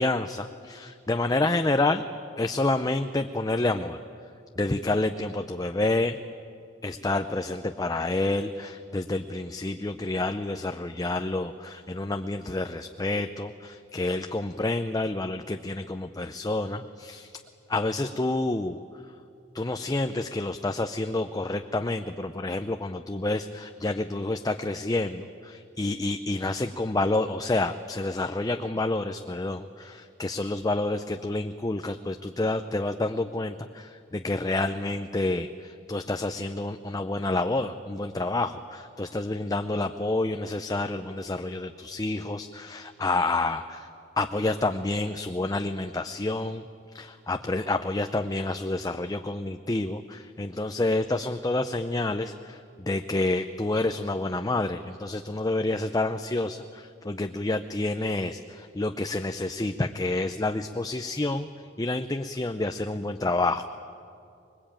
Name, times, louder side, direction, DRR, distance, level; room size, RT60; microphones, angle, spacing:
voice 1, 0.0-2.1 2.4-4.0 4.6-6.2 6.8-17.3 17.7-18.8 19.5-43.9 44.2-46.6 46.9-61.5 61.8-63.6, left 2 dB, 20° left, 7 dB, 0.6 m, -28 dB
25.0 x 21.5 x 8.9 m, 2.5 s
head